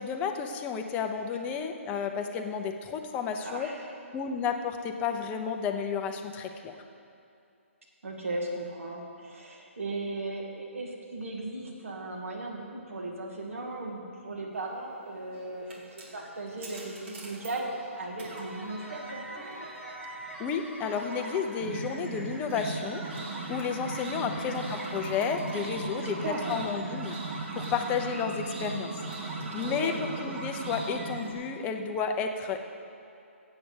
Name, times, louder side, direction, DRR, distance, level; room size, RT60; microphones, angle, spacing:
voice 1, 0.0-3.7 4.1-6.8 20.4-23.1 23.5-27.2 27.5-29.0 29.5-32.6, left 6 dB, 20° left, 5 dB, 0.6 m, -32 dB
voice 2, 3.4-3.9 8.0-15.6 15.9-17.7 18.0-19.5 24.1-24.6 26.0-26.6 29.6-30.0, right 2 dB, 70° right, 0 dB, 2.1 m, -37 dB
sound 1, 15.1-31.3, right 3 dB, 55° right, 2.5 m, -38 dB
sound 2, 18.5-28.3, left 1 dB, ahead, 1.2 m, -50 dB
7.8 x 7.7 x 7.8 m, 2.6 s
hypercardioid pair, 145°, 7 cm